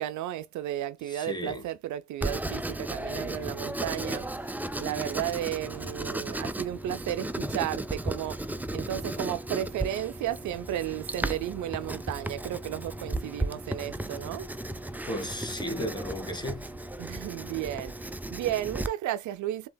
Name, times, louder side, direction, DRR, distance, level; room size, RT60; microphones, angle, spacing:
voice 1, 0.0-4.3 4.8-8.5 8.7-14.5 17.0-19.7, right 12 dB, 75° right, 0.5 m, -33 dB
voice 2, 1.1-1.6 15.0-16.7, equal, 15° left, 1.5 m, -34 dB
Writing, 2.2-18.9, right 1 dB, 5° right, 0.4 m, -35 dB
7.5 x 2.9 x 2.2 m
cardioid pair, 90°, 30 cm